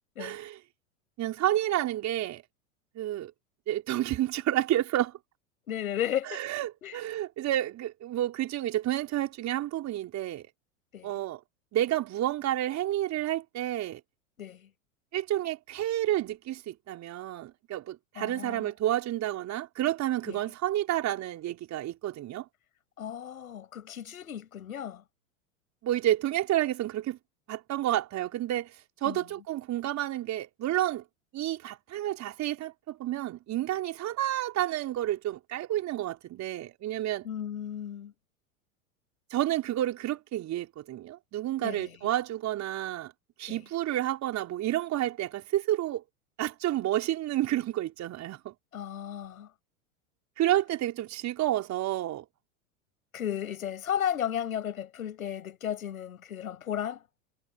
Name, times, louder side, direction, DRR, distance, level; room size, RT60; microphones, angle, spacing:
voice 1, 0.2-0.6 1.2-2.4 2.9-3.3 3.7-5.2 6.3-10.4 11.0-11.4 11.7-14.0 15.1-22.4 25.8-27.2 27.5-28.7 29.0-31.0 31.3-37.3 39.3-43.1 43.4-46.0 46.4-48.5 50.4-52.2, right 13 dB, 40° right, 4.7 m, -30 dB
voice 2, 5.7-6.4 6.8-7.0 10.9-11.1 14.4-14.7 18.2-18.7 20.3-20.4 23.0-25.0 29.0-29.2 37.2-38.1 41.6-42.1 43.5-43.6 48.7-49.5 53.1-57.0, left 10 dB, 85° left, 7.6 m, -34 dB
hypercardioid pair, 100°, 41 cm